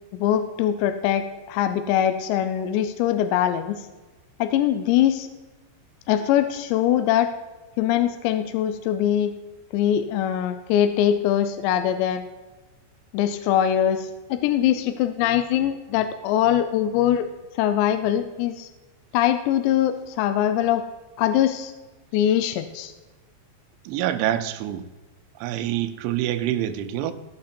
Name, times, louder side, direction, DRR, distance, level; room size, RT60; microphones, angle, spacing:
voice 1, 0.1-3.8 4.4-5.3 6.1-7.3 7.8-9.3 9.7-12.3 13.1-17.3 17.6-18.7 19.1-20.8 21.2-21.7 22.1-22.9, left 10 dB, 80° left, 9 dB, 2.6 m, -22 dB
voice 2, 23.9-24.9 25.4-27.1, right 12 dB, 80° right, 9 dB, 3.1 m, -26 dB
17.0 x 6.2 x 4.4 m, 1.2 s
omnidirectional pair, 5.6 m